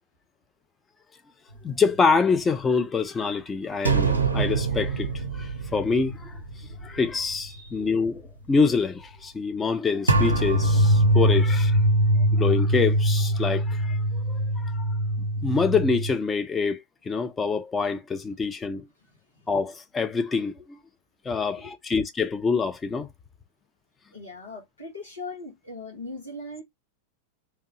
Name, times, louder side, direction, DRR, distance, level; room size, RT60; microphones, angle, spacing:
voice 1, 1.6-6.4 6.8-11.8 12.3-14.9 15.4-18.9 19.5-20.8 21.2-23.1, left 4 dB, 15° left, 0.6 m, -26 dB
sound 1, 3.9-7.0 7.3-7.5 10.1-16.1, right 1 dB, 80° right, 0.7 m, -23 dB
voice 2, 7.5-7.8 19.3-19.5 20.6-20.7 21.3-21.7 24.1-26.6, left 2 dB, 75° left, 1.4 m, -40 dB
3.5 x 2.7 x 2.9 m
figure-of-eight pair, 90°, 0 cm